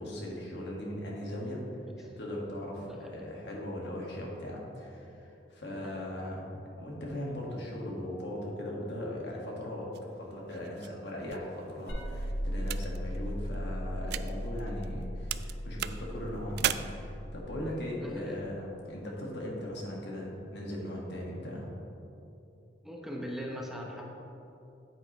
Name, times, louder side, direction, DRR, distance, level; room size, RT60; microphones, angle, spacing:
voice 1, 0.0-1.6 2.0-6.4 6.8-9.9 10.2-21.7, left 1 dB, 70° left, -3 dB, 1.7 m, -39 dB
voice 2, 2.9-3.2 5.8-6.0 18.0-18.4 22.8-24.1, equal, ahead, -1 dB, 0.8 m, -40 dB
sound 1, 9.9-15.0 15.3-16.7, right 12 dB, 65° right, 0.3 m, -38 dB
sound 2, 11.9-17.4, equal, 90° left, 1.9 m, -37 dB
9.7 x 7.9 x 3.1 m, 2.9 s
head